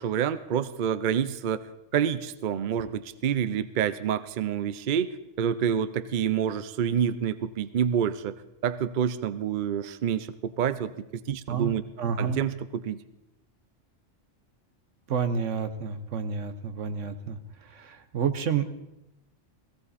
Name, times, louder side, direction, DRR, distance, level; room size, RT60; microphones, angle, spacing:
voice 1, 0.0-1.6 1.9-8.3 8.6-11.8 12.2-13.0, right 8 dB, 50° right, 14 dB, 0.6 m, -28 dB
voice 2, 11.5-12.4 15.1-17.4 17.7-18.7, right 6 dB, 85° right, 9 dB, 1.4 m, -29 dB
17.5 x 16.0 x 4.2 m, 0.91 s
omnidirectional pair, 1.3 m